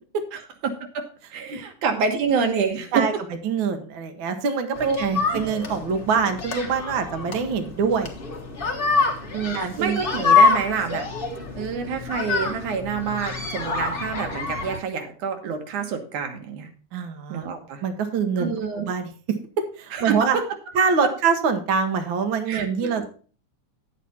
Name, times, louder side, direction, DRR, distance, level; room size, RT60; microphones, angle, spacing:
voice 1, 0.3-1.0 1.3-3.1 4.8-5.0 5.3-5.4 9.3-11.1 11.6-16.7 17.3-17.8 18.4-18.9 19.9-20.4 21.0-21.1 22.5-23.0, right 6 dB, 75° right, 5 dB, 2.8 m, -27 dB
voice 2, 3.4-8.1 9.5-10.0 16.9-17.4 17.8-18.5 18.8-19.4 19.8-20.4 20.7-23.1, right 6 dB, 60° right, 7 dB, 1.3 m, -24 dB
sound 1, 4.8-14.8, left 4 dB, 50° left, 0.6 m, -25 dB
10.0 x 8.1 x 4.2 m, 0.40 s
omnidirectional pair, 3.5 m